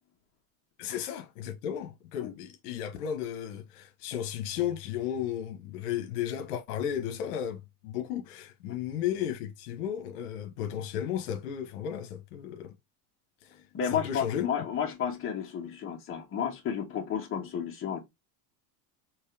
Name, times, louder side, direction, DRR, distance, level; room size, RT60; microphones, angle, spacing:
voice 1, 0.8-12.7 13.4-14.7, left 10 dB, 75° left, 1.2 m, -34 dB
voice 2, 13.7-18.1, left 8 dB, 25° left, 1.7 m, -32 dB
4.5 x 3.0 x 3.4 m
supercardioid pair, 145°, 46 cm